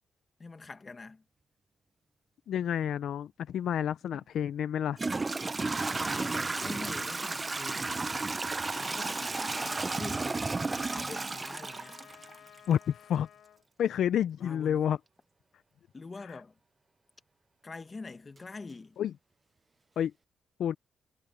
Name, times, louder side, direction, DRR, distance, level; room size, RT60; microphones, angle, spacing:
voice 1, 0.4-1.2 5.8-8.1 8.8-12.0 14.4-14.8 15.9-16.5 17.6-19.0, left 3 dB, 20° left, 1.0 m, -45 dB
voice 2, 2.5-5.0 12.7-13.3 13.8-15.0 16.3-16.4 19.0-19.1 20.0-20.1 20.6-20.8, left 9 dB, 65° left, 0.4 m, -29 dB
Toilet flush / Trickle dribble, 4.1-4.2 4.9-12.7, right 3 dB, 20° right, 0.5 m, -33 dB
Trumpet, 8.6-13.6, left 10 dB, 85° left, 2.0 m, -55 dB
wide cardioid pair, 175°, 0 cm